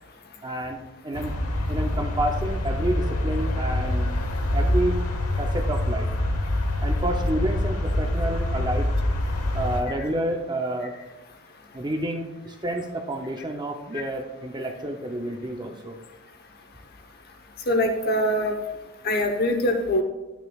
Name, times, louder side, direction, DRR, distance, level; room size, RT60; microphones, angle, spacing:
voice 1, 0.4-1.3 1.7-4.1 4.5-5.0 5.4-6.1 6.8-8.9 9.5-10.9 11.7-16.0, right 1 dB, 20° right, 3 dB, 0.5 m, -29 dB
sound 1, 1.1-9.8, left 1 dB, 90° left, 1.1 m, -25 dB
voice 2, 17.7-18.5 19.0-20.0, left 1 dB, 45° left, 5 dB, 0.9 m, -23 dB
10.5 x 9.2 x 2.3 m, 1.1 s
head